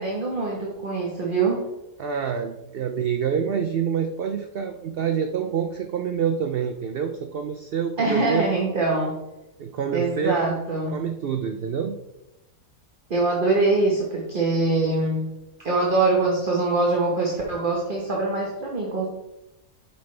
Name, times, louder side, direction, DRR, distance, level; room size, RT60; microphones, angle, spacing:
voice 1, 0.0-1.7 8.0-9.1 9.9-11.0 13.1-15.2 15.6-19.1, right 3 dB, 40° right, -2 dB, 1.2 m, -23 dB
voice 2, 2.0-8.5 9.6-10.6 10.9-12.0, right 7 dB, 85° right, 6 dB, 0.5 m, -27 dB
8.2 x 5.4 x 3.2 m, 0.92 s
omnidirectional pair, 1.6 m